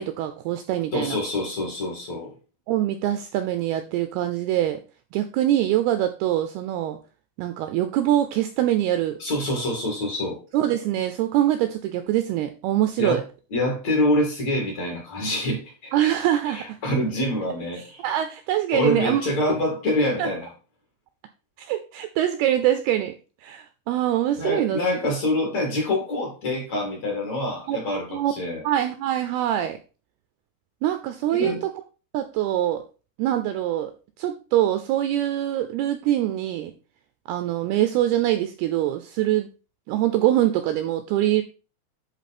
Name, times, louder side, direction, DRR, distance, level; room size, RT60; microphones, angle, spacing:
voice 1, 0.0-1.2 2.7-4.8 5.1-7.0 7.4-9.2 10.5-13.2 15.9-16.8 17.8-19.2 20.2-20.3 21.6-23.2 23.4-25.1 27.7-27.8 28.1-28.3 28.6-29.8 30.8-31.7 32.1-32.8 33.2-33.9 34.2-36.7 37.3-39.5 39.9-41.4, right 12 dB, 80° right, 9 dB, 2.3 m, -24 dB
voice 2, 0.9-2.3 9.2-10.4 13.0-13.2 13.5-15.9 16.5-18.0 18.7-20.5 24.4-28.6 31.3-31.6, left 1 dB, 45° left, 0 dB, 3.0 m, -26 dB
10.5 x 3.8 x 4.2 m, 0.34 s
omnidirectional pair, 5.0 m